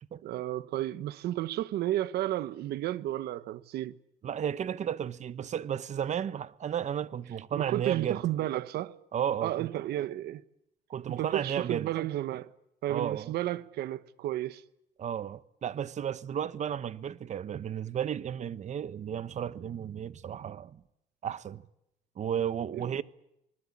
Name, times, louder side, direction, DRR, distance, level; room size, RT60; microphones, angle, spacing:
voice 1, 0.2-4.0 7.5-9.0 9.4-10.4 11.1-12.5 12.8-14.6 22.7-23.0, right 14 dB, 75° right, 1.1 m, -32 dB
voice 2, 4.2-8.2 9.1-9.7 10.9-11.9 12.9-13.3 15.0-20.8 21.2-21.6 22.2-23.0, right 9 dB, 45° right, 1.0 m, -33 dB
25.5 x 20.5 x 8.6 m
cardioid pair, 110°, 17 cm